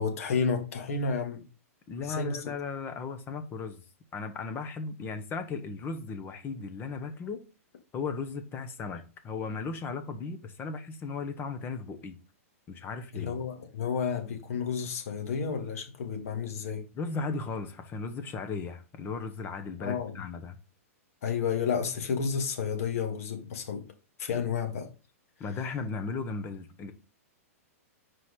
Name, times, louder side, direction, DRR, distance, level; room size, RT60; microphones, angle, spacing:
voice 1, 0.0-1.4 2.0-2.4 13.1-16.9 19.8-20.1 21.2-23.9 24.2-24.9, left 6 dB, 70° left, 1.7 m, -31 dB
voice 2, 1.9-3.8 4.1-7.4 7.9-12.1 12.7-13.4 16.9-20.6 25.4-26.9, left 4 dB, 25° left, 1.0 m, -36 dB
4.7 x 4.1 x 4.8 m
hypercardioid pair, 125°, 8 cm